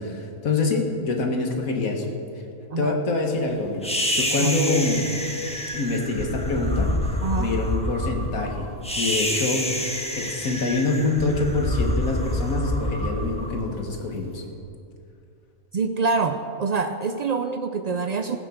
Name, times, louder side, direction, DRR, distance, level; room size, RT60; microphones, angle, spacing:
voice 1, 0.0-2.1 2.8-5.0 5.7-6.9 7.4-8.7 9.0-9.7 10.2-14.4, left 3 dB, 85° left, 3 dB, 2.0 m, -25 dB
sound 1, 3.8-14.2, left 1 dB, 5° left, 1.3 m, -27 dB
voice 2, 7.2-7.5 15.7-18.4, right 4 dB, 75° right, 7 dB, 0.3 m, -25 dB
15.5 x 9.1 x 7.1 m, 2.5 s
omnidirectional pair, 1.4 m